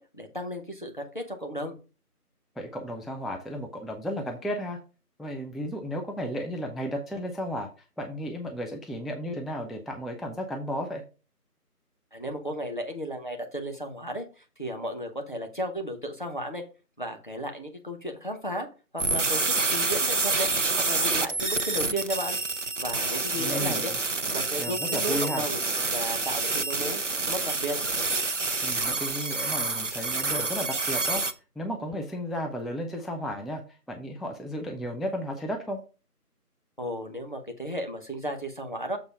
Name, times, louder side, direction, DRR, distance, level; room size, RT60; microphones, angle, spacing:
voice 1, 0.0-1.8 12.1-16.6 17.0-18.7 18.9-20.5 20.8-22.4 22.8-23.9 24.3-25.6 25.9-27.0 27.3-27.8 36.8-39.0, equal, 30° left, 4 dB, 0.9 m, -34 dB
voice 2, 2.6-4.8 5.2-11.0 23.4-23.9 24.6-25.4 28.6-31.2 31.6-33.6 33.9-35.8, equal, ahead, 3 dB, 0.5 m, -34 dB
sound 1, 19.0-31.3, right 3 dB, 55° right, 0.6 m, -28 dB
7.0 x 3.9 x 5.0 m, 0.34 s
figure-of-eight pair, 170°, 46 cm